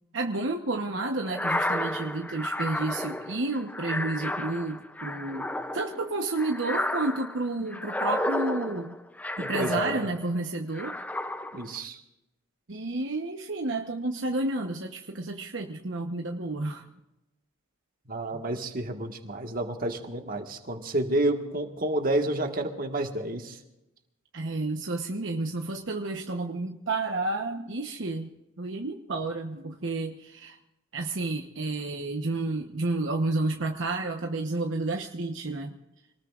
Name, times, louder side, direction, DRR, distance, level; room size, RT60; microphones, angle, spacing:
voice 1, 0.1-9.0 9.4-11.0 12.7-16.9 18.3-18.4 24.3-28.3 28.6-30.6 30.9-35.8, right 2 dB, 60° right, 2 dB, 1.1 m, -31 dB
sound 1, 1.3-10.3 10.7-11.8, left 1 dB, 5° left, 0.5 m, -32 dB
voice 2, 9.4-10.0 11.5-12.0 18.1-23.6, right 1 dB, 45° right, 4 dB, 1.7 m, -30 dB
26.5 x 19.5 x 2.5 m, 0.93 s
head